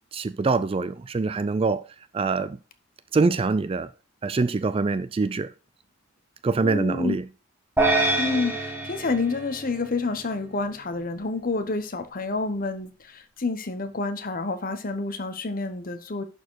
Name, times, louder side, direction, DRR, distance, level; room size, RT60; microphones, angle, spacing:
voice 1, 0.1-1.8 2.1-2.6 3.1-3.9 4.2-5.5 6.4-7.2, right 4 dB, 25° right, 0.3 m, -24 dB
voice 2, 6.6-7.2 8.2-16.2, left 3 dB, 40° left, 1.0 m, -29 dB
sound 1, 7.8-10.2, right 2 dB, 10° right, 1.4 m, -26 dB
11.0 x 4.5 x 4.6 m
head